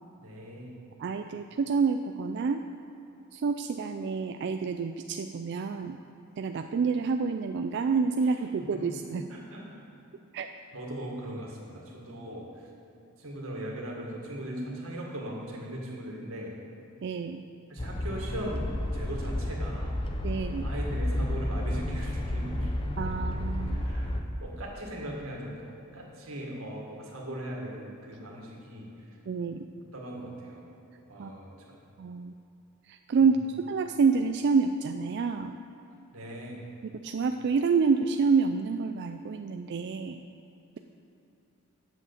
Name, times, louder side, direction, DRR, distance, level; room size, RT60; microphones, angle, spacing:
voice 1, 0.2-0.7 8.6-8.8 9.3-9.6 10.7-12.5 13.2-16.5 17.7-19.9 20.6-25.6 25.9-28.9 29.9-30.7 31.1-31.8 33.2-33.3 36.1-36.6, right 1 dB, 70° right, -2 dB, 1.9 m, -39 dB
voice 2, 1.0-2.6 3.3-6.0 6.4-9.2 10.3-10.5 17.0-17.4 20.2-20.7 23.0-23.9 29.3-29.7 31.2-31.3 32.0-32.3 32.9-33.4 33.7-35.6 36.8-40.2, right 5 dB, 50° right, 6 dB, 0.3 m, -28 dB
sound 1, 17.8-24.2, left 1 dB, 25° left, 0.6 m, -31 dB
8.1 x 7.2 x 7.1 m, 2.8 s
head